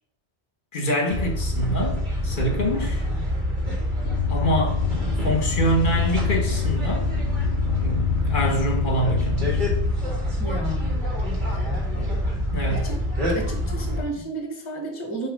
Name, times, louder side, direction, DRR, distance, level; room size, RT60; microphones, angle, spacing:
voice 1, 0.7-3.1 4.3-4.8 5.2-7.1 7.6-9.7 11.5-11.6 12.5-12.8, right 1 dB, 50° left, 1.4 m, -25 dB
sound 1, 1.1-14.0, left 1 dB, 45° right, 1.8 m, -26 dB
sound 2, 4.0-9.8, left 15 dB, 75° left, 0.9 m, -28 dB
voice 2, 10.4-11.0 12.7-13.0 13.3-15.3, right 1 dB, 25° left, 1.2 m, -32 dB
6.8 x 3.2 x 5.2 m
omnidirectional pair, 1.1 m